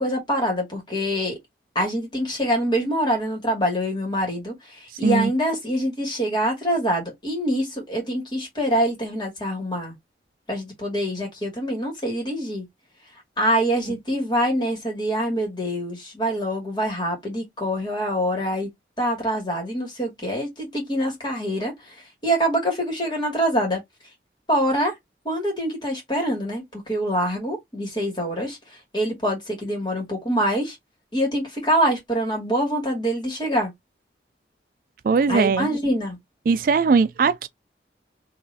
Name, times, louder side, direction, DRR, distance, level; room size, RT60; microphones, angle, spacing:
voice 1, 0.0-1.4 1.7-9.9 10.5-12.7 13.4-18.7 19.0-21.9 22.2-23.8 24.5-24.9 25.2-28.6 28.9-30.8 31.1-33.7 35.3-36.2, equal, 25° left, 2.2 m, -25 dB
voice 2, 35.0-35.7 36.5-37.5, right 5 dB, 50° right, 0.3 m, -19 dB
3.9 x 3.3 x 2.7 m
head